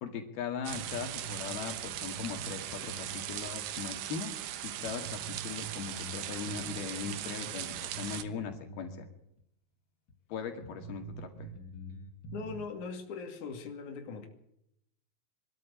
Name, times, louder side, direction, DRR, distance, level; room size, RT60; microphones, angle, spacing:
voice 1, 0.0-4.3 4.6-9.1 10.3-11.5, left 7 dB, 75° left, 5 dB, 4.0 m, -39 dB
sound 1, 0.6-8.2, right 12 dB, 70° right, 2.4 m, -39 dB
sound 2, 0.7-3.3 3.6-3.7 4.3-4.4 4.8-9.1 9.4-9.5 10.1-10.2 10.6-12.7, right 3 dB, 35° left, 2.5 m, -46 dB
voice 2, 12.3-14.3, left 5 dB, 55° left, 4 dB, 3.8 m, -40 dB
23.5 x 13.0 x 8.7 m, 0.79 s
omnidirectional pair, 4.4 m